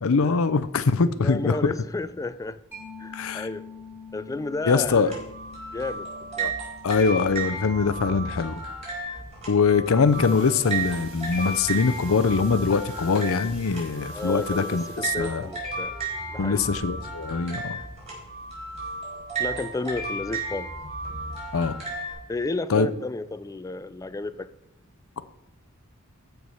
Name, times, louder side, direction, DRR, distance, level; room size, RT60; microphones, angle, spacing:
voice 1, 0.0-1.7 3.1-3.5 4.6-5.1 6.4-6.5 6.8-8.6 9.5-15.5 16.4-17.8 21.5-21.7 22.7-22.9, left 5 dB, 70° left, 0.6 m, -23 dB
voice 2, 1.2-2.6 3.0-3.6 4.1-5.2 5.7-6.6 14.1-16.0 16.3-16.7 19.4-20.7 22.3-24.5, left 3 dB, 15° left, 0.3 m, -32 dB
Mallet percussion, 2.7-10.0, left 4 dB, 5° right, 3.0 m, -47 dB
sound 1, 4.8-22.1, right 3 dB, 30° right, 4.4 m, -34 dB
sound 2, 9.7-18.2 18.6-18.9 19.2-19.3 19.8-19.9, right 2 dB, 55° right, 4.4 m, -49 dB
13.5 x 4.6 x 5.4 m
head